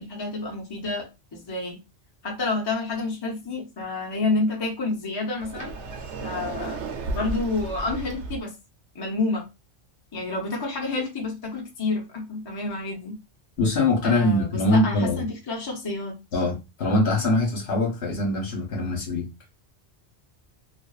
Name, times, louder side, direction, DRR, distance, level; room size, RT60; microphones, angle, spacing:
voice 1, 0.0-1.8 2.2-5.7 6.2-6.8 7.1-8.6 8.9-9.5 10.1-13.2 14.0-16.2, left 3 dB, 30° left, 0.5 m, -29 dB
Sliding door, 5.4-8.4, right 3 dB, 85° right, 0.9 m, -33 dB
voice 2, 13.6-15.2 16.3-19.3, left 2 dB, 65° left, 1.1 m, -23 dB
2.6 x 2.3 x 2.3 m
omnidirectional pair, 1.2 m